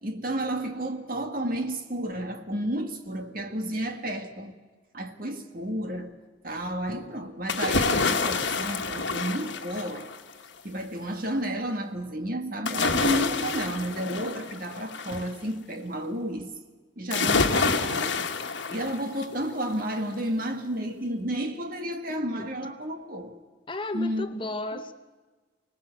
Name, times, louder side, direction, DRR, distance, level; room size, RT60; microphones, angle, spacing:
voice 1, 0.0-4.5 4.9-6.1 6.4-10.1 10.6-16.5 17.0-18.3 18.7-23.4 23.9-24.3, right 1 dB, 50° right, 1.9 m, -31 dB
sound 1, 7.5-10.3 12.7-15.3 17.1-19.4 19.8-19.9, left 4 dB, 70° left, 1.5 m, -27 dB
sound 2, 11.3-11.7 14.5-15.6 17.0-18.1, right 1 dB, 25° right, 1.6 m, -49 dB
voice 2, 22.1-22.5 23.7-24.9, left 2 dB, 25° left, 0.7 m, -34 dB
25.0 x 19.0 x 8.1 m
head